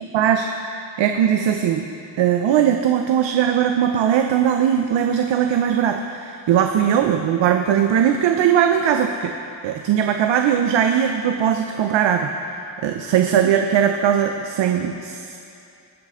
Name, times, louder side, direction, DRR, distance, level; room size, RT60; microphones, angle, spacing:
voice 1, 0.1-1.9 2.2-9.3 9.6-15.4, right 9 dB, 90° right, 5 dB, 0.7 m, -19 dB
19.5 x 7.6 x 3.7 m, 2.6 s
wide cardioid pair, 150°, 43 cm